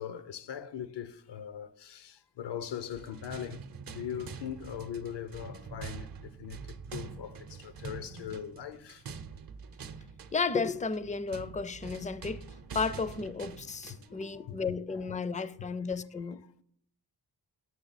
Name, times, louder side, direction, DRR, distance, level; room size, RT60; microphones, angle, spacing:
voice 1, 0.0-3.6 3.9-6.6 6.9-9.0 12.7-12.8 13.9-15.0 15.4-15.7, left 9 dB, 75° left, 0.7 m, -41 dB
sound 1, 2.8-14.2, right 5 dB, 55° right, 0.7 m, -45 dB
voice 2, 10.3-12.4 12.7-16.4, left 4 dB, 20° left, 0.4 m, -33 dB
7.3 x 6.4 x 4.0 m
cardioid pair, 65°, 42 cm